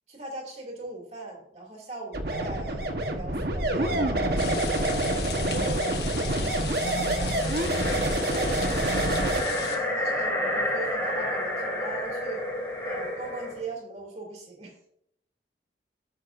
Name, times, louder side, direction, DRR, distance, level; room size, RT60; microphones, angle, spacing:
voice 1, 0.1-2.9 3.1-4.8 5.4-7.7 8.2-12.4 12.8-14.8, right 2 dB, 40° right, -1 dB, 2.6 m, -40 dB
sound 1, 2.1-9.4, right 1 dB, 60° right, 1.2 m, -27 dB
sound 2, 4.4-9.8, left 5 dB, 70° left, 1.1 m, -36 dB
sound 3, 7.2-13.6, left 1 dB, 15° left, 2.8 m, -30 dB
16.0 x 6.4 x 2.6 m, 0.74 s
head